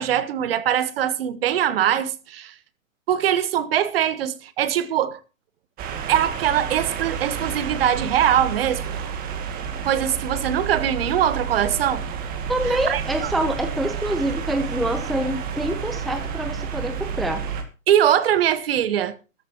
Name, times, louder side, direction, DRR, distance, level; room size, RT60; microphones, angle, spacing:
voice 1, 0.0-2.5 3.1-5.2 6.1-8.9 9.8-12.0 12.7-13.3 17.9-19.1, right 10 dB, 45° right, 1.4 m, -22 dB
sound 1, 5.8-17.6, right 7 dB, 20° right, 2.1 m, -30 dB
voice 2, 12.5-17.4, right 1 dB, ahead, 0.7 m, -26 dB
15.5 x 14.0 x 3.0 m
figure-of-eight pair, 125°, 40 cm